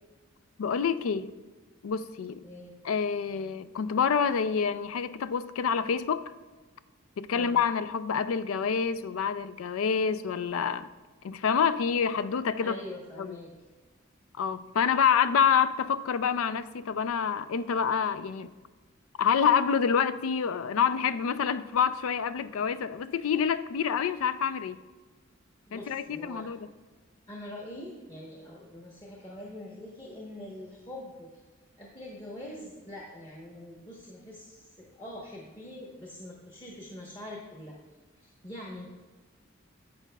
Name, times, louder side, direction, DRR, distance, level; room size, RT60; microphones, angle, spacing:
voice 1, 0.6-1.3 1.8-2.4 2.8-6.3 7.2-10.9 11.2-12.8 13.2-13.4 14.4-18.5 19.2-24.8 25.7-26.7, left 6 dB, 85° left, 0.4 m, -27 dB
voice 2, 2.4-2.7 7.3-7.6 12.6-13.5 25.7-26.5 27.3-31.3 31.8-37.8 38.2-38.8, left 1 dB, 20° left, 1.0 m, -44 dB
10.5 x 7.9 x 2.3 m
head